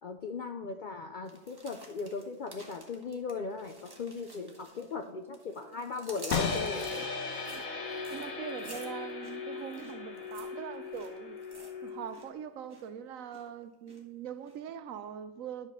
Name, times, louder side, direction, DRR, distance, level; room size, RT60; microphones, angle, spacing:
voice 1, 0.0-6.8, left 4 dB, 65° left, 0.5 m, -38 dB
sound 1, 1.3-5.1 5.3-12.3 12.5-12.9 13.3-14.0 14.5-14.6, right 1 dB, 20° right, 1.2 m, -50 dB
sound 2, 6.3-12.3, left 5 dB, 85° left, 1.6 m, -37 dB
voice 2, 8.1-11.4 11.8-15.7, right 8 dB, 75° right, 1.0 m, -42 dB
10.5 x 4.1 x 6.4 m
omnidirectional pair, 1.4 m